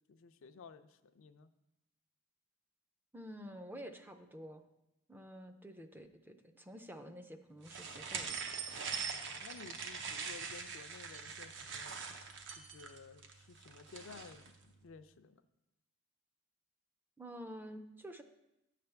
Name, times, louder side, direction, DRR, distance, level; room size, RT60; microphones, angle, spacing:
voice 1, 0.1-1.5 9.1-12.0 12.6-15.4, left 5 dB, 70° left, 10 dB, 0.4 m, -55 dB
voice 2, 3.1-4.6 5.1-8.4 17.2-18.2, equal, 10° right, 7 dB, 0.4 m, -49 dB
sound 1, 7.7-14.5, right 5 dB, 60° right, 0.8 m, -43 dB
9.8 x 3.4 x 6.9 m, 0.92 s
head